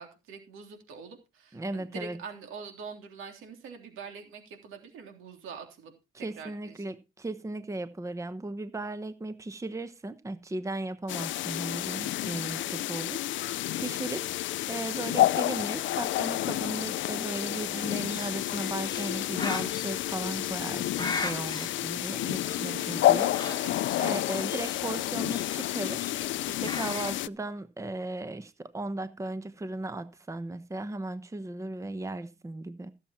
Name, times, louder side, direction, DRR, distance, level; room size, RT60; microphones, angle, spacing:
voice 1, 0.0-6.8 22.6-23.0 23.4-24.2, right 5 dB, 90° right, 3.3 m, -44 dB
voice 2, 1.5-2.2 6.1-14.3 14.7-23.4 24.0-32.9, right 2 dB, 15° right, 1.0 m, -36 dB
sound 1, 11.1-27.3, left 14 dB, 75° left, 0.5 m, -30 dB
Bird, 17.3-27.2, left 4 dB, 20° left, 1.3 m, -41 dB
15.0 x 7.4 x 4.3 m
cardioid pair, 90°, 20 cm